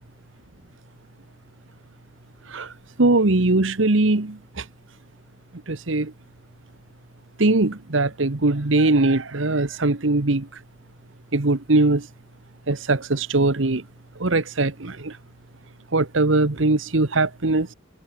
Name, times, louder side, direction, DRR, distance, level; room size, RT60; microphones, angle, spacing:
voice 1, 3.0-4.6 5.7-6.1 7.4-10.5 11.3-12.1 12.7-13.8 14.2-15.2 15.9-17.7, right 2 dB, 70° right, 1.3 m, -21 dB
head